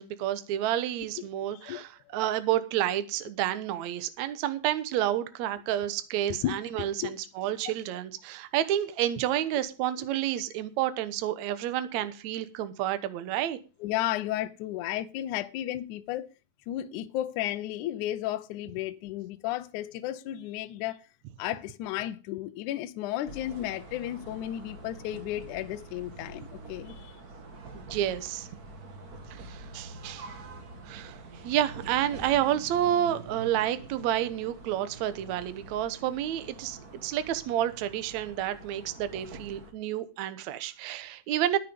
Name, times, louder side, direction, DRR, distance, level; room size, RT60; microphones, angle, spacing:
voice 1, 0.0-13.6 27.7-28.5 29.3-30.3 30.8-31.2 31.4-41.6, right 12 dB, 75° right, 1.7 m, -30 dB
voice 2, 1.2-2.2 6.3-6.6 7.0-7.1 13.8-16.3 16.7-21.0 21.4-27.1, left 13 dB, 80° left, 1.7 m, -33 dB
sound 1, 23.2-39.7, right 2 dB, 50° right, 1.1 m, -46 dB
12.5 x 10.0 x 5.2 m
omnidirectional pair, 4.7 m